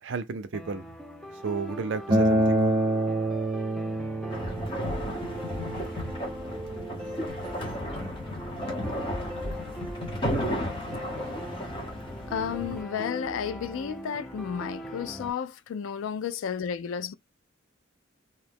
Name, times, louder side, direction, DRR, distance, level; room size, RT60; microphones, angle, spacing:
voice 1, 0.0-0.8 1.4-2.8, right 4 dB, 65° right, 0.5 m, -32 dB
sound 1, 0.5-15.3, equal, 5° left, 0.4 m, -41 dB
Acoustic guitar, 2.1-7.3, right 1 dB, 20° right, 0.8 m, -27 dB
sound 2, 4.3-12.8, equal, 25° left, 0.9 m, -34 dB
voice 2, 12.3-17.1, left 7 dB, 75° left, 0.3 m, -32 dB
2.7 x 2.2 x 3.3 m
head